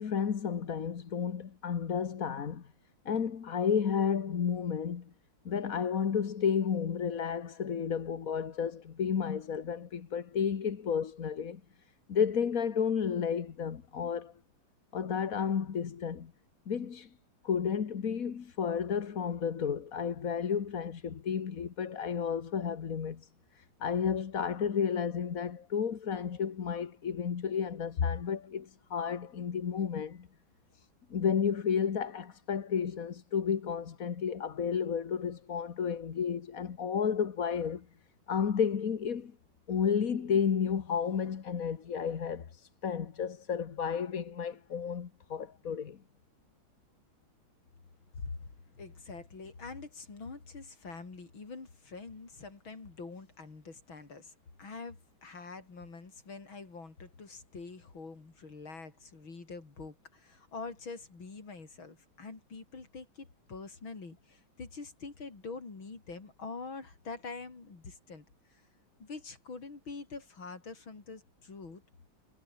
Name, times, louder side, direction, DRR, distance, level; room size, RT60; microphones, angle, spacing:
voice 1, 0.0-2.7 3.1-5.1 5.5-11.6 12.1-14.3 14.9-16.3 16.7-17.1 17.4-30.3 31.1-37.9 38.3-39.3 39.7-46.0, left 7 dB, 45° left, 1.7 m, -32 dB
voice 2, 48.2-48.5 48.7-68.6 69.0-71.8, left 4 dB, 90° left, 5.0 m, -45 dB
omnidirectional pair, 2.1 m